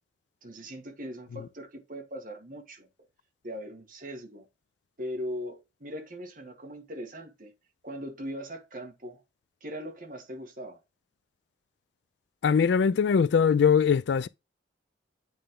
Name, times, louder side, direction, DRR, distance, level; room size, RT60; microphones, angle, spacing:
voice 1, 0.4-2.9 3.4-4.5 5.0-7.5 7.8-9.2 9.6-10.8, equal, 45° right, 1.6 m, -40 dB
voice 2, 12.4-14.3, left 6 dB, 65° left, 0.3 m, -22 dB
8.8 x 3.4 x 3.7 m
head